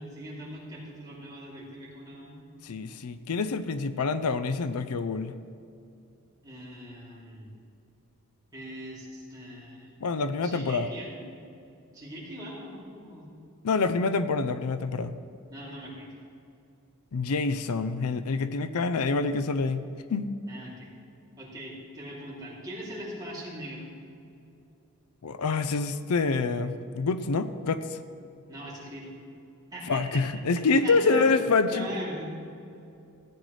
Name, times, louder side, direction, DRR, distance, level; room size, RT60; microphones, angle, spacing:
voice 1, 0.0-2.4 6.4-7.5 8.5-10.0 10.4-11.2 11.9-13.3 15.5-16.1 20.5-20.9 21.4-23.9 28.5-29.1 29.7-30.4 30.7-31.3 31.6-32.2, right 1 dB, 20° right, -7 dB, 3.0 m, -41 dB
voice 2, 2.6-5.3 10.0-10.9 13.6-15.1 17.1-19.8 20.1-20.3 25.2-28.0 29.9-31.9, left 4 dB, 85° left, 12 dB, 0.5 m, -26 dB
16.0 x 9.4 x 3.3 m, 2.6 s
head